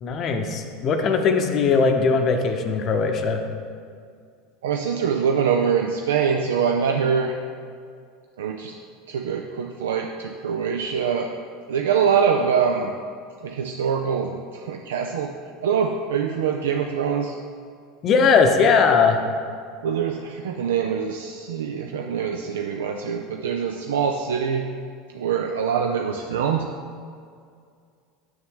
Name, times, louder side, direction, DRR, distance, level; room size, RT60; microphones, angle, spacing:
voice 1, 0.0-3.4 18.0-19.2, left 5 dB, 45° left, 5 dB, 0.7 m, -19 dB
voice 2, 4.6-7.3 8.4-8.7 9.1-11.3 11.7-12.9 13.4-15.3 15.6-17.4 19.8-24.6 25.1-26.7, right 7 dB, 75° right, 3 dB, 0.4 m, -24 dB
6.9 x 6.4 x 3.6 m, 2.2 s
hypercardioid pair, 80°, 0 cm